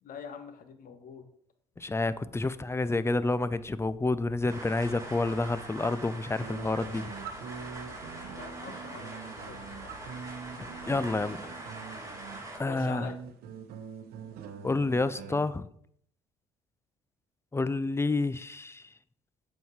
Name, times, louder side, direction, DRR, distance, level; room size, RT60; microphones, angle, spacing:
voice 1, 0.0-1.3 8.3-9.9 12.5-13.2, left 6 dB, 55° left, 8 dB, 1.3 m, -45 dB
voice 2, 1.8-7.1 10.9-11.4 12.6-13.1 14.6-15.7 17.5-18.8, left 3 dB, 15° left, 15 dB, 0.5 m, -29 dB
sound 1, 4.5-12.6, right 2 dB, 20° right, 2.7 m, -43 dB
sound 2, 6.4-8.5 9.4-11.3, equal, 80° left, 1.6 m, -54 dB
sound 3, 6.4-15.4, right 6 dB, 65° right, 0.9 m, -44 dB
7.9 x 4.6 x 4.6 m, 0.66 s
hypercardioid pair, 60°, 17 cm